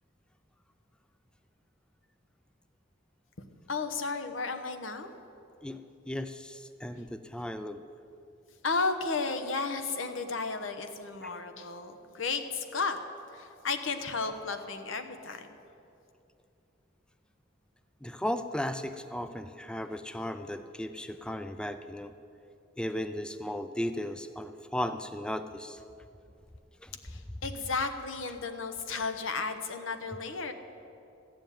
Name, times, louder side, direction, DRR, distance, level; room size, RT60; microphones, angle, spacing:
voice 1, 3.7-5.1 8.6-13.0 13.3-15.5 27.0-30.5, left 4 dB, 85° left, 8 dB, 1.0 m, -33 dB
voice 2, 5.6-7.8 11.2-11.3 18.0-22.1 22.8-25.8 26.8-26.9, left 1 dB, 5° left, 10 dB, 0.4 m, -36 dB
14.0 x 7.1 x 9.2 m, 2.7 s
head